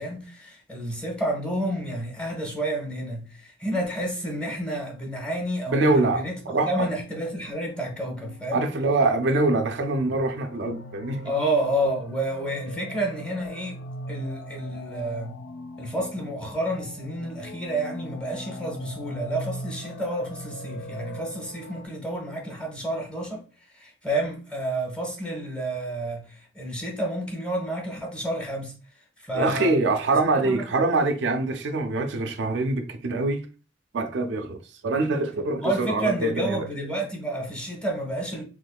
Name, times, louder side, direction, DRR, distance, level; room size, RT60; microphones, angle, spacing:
voice 1, 0.0-6.4 6.7-8.7 11.2-15.4 15.8-23.4 23.7-28.7 29.2-30.6 35.6-38.4, right 1 dB, 5° left, 0.9 m, -30 dB
voice 2, 5.7-6.2 6.5-6.9 8.5-11.2 29.3-33.5 33.9-36.7, right 2 dB, 70° right, 0.4 m, -24 dB
sound 1, 7.1-21.9, left 1 dB, 75° left, 0.4 m, -40 dB
3.4 x 3.1 x 2.2 m
head